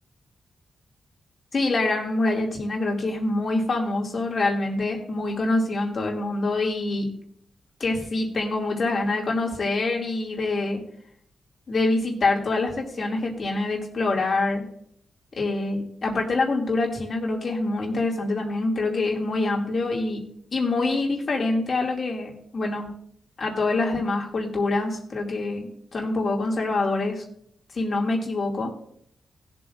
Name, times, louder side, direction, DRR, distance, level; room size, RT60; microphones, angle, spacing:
voice 1, 1.5-7.1 7.8-10.8 11.7-14.6 15.3-20.2 20.5-22.9 23.4-27.2 27.7-28.7, left 2 dB, 45° left, 0 dB, 2.6 m, -25 dB
19.5 x 7.7 x 2.6 m, 0.69 s
wide cardioid pair, 125°, 0 cm